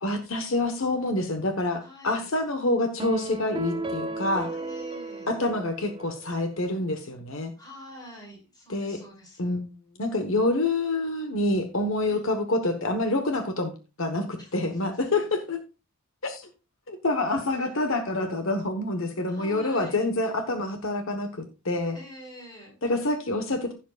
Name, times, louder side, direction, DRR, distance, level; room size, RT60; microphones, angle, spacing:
voice 1, 0.0-4.5 5.3-7.5 8.7-9.0 9.4-9.6 9.9-13.7 14.0-15.6 16.2-16.5 16.9-22.0 22.8-23.7, left 2 dB, 65° left, 6 dB, 1.2 m, -27 dB
voice 2, 1.8-2.3 4.4-5.3 7.6-9.6 12.0-12.2 14.4-14.6 15.1-15.3 19.3-20.1 21.9-22.7, equal, 20° left, -1 dB, 5.4 m, -46 dB
sound 1, 3.0-6.5, right 2 dB, 25° right, 0.6 m, -34 dB
15.5 x 7.2 x 2.4 m, 0.31 s
head